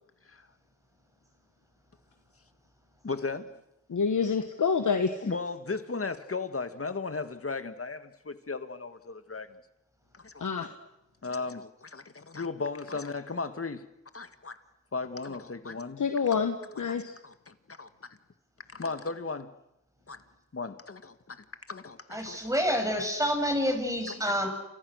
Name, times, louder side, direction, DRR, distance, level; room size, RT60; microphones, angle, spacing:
voice 1, 3.0-3.5 5.2-9.5 10.1-10.5 11.2-13.9 14.1-14.6 14.9-16.0 16.8-18.2 18.7-19.5 20.1-20.2 20.5-22.4 24.1-24.2, left 4 dB, 50° left, 10 dB, 1.9 m, -36 dB
voice 2, 3.9-5.1 10.4-10.7 16.0-17.1, left 5 dB, 85° left, 7 dB, 1.5 m, -27 dB
voice 3, 22.1-24.5, equal, 10° right, 4 dB, 7.6 m, -28 dB
29.0 x 27.5 x 6.5 m, 0.87 s
cardioid pair, 55°, 30 cm